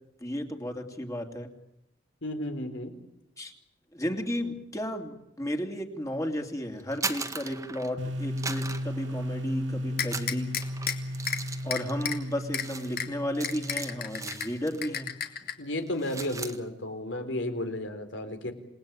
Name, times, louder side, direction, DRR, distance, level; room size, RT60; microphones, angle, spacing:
voice 1, 0.2-1.5 3.4-3.5 3.9-10.5 11.6-15.1, equal, 20° left, 4 dB, 2.9 m, -33 dB
voice 2, 2.2-2.9 15.6-18.5, left 1 dB, 75° left, 8 dB, 3.9 m, -33 dB
sound 1, 6.8-8.0 8.4-9.6 10.0-14.9 15.2-15.5 15.8-16.6, right 4 dB, 15° right, 1.6 m, -39 dB
sound 2, 8.0-14.8, equal, 75° right, 2.2 m, -35 dB
sound 3, 10.0-10.9 11.3-11.4 11.7-12.2 12.5-12.6 13.0-13.1 13.4-14.5 14.8-15.5, left 8 dB, 55° left, 2.6 m, -31 dB
28.0 x 20.0 x 8.9 m, 0.85 s
head